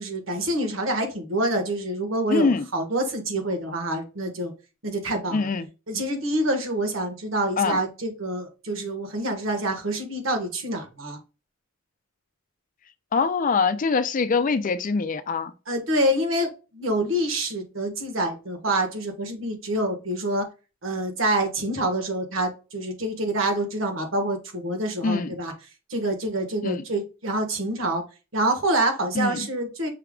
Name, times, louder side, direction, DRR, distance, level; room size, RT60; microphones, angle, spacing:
voice 1, 0.0-4.5 4.8-5.5 5.9-11.2 15.7-20.4 20.8-25.5 25.9-28.0 28.3-29.9, right 1 dB, 90° right, 1.5 m, -26 dB
voice 2, 2.3-2.7 5.3-5.7 7.6-7.8 13.1-15.5 25.0-25.3 26.6-26.8 29.2-29.5, left 4 dB, 40° left, 0.4 m, -23 dB
5.7 x 3.6 x 2.3 m
head